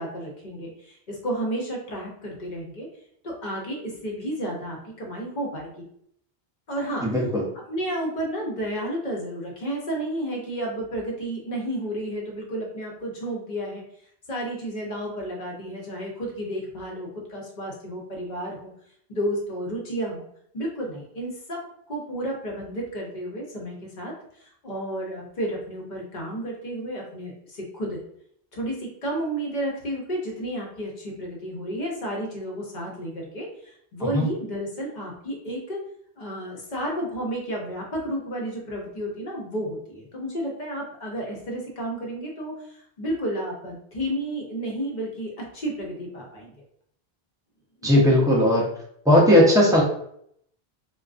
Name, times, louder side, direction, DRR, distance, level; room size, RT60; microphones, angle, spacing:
voice 1, 0.0-2.9 3.2-5.9 6.7-7.1 7.7-13.8 14.3-18.7 19.1-20.3 20.5-21.6 21.9-28.0 28.5-35.8 36.2-46.5 47.8-47.9, right 1 dB, 50° left, -1 dB, 0.7 m, -32 dB
voice 2, 7.0-7.4 34.0-34.3 47.8-48.7 49.1-49.8, left 1 dB, 5° right, -4 dB, 0.4 m, -17 dB
2.4 x 2.3 x 2.4 m, 0.68 s
omnidirectional pair, 1.0 m